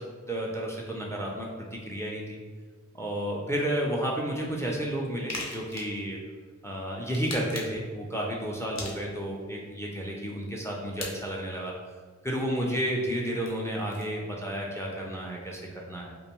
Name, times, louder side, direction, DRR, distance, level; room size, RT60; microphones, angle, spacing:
voice 1, 0.0-2.4 2.9-6.2 6.6-11.7 12.2-15.6 15.9-16.1, equal, 10° left, -2 dB, 0.4 m, -32 dB
sound 1, 5.3-6.0 7.0-7.9 8.7-9.4 11.0-11.1 13.1-14.1, left 3 dB, 65° left, 0.6 m, -39 dB
2.5 x 2.2 x 2.9 m, 1.5 s
wide cardioid pair, 65°, 29 cm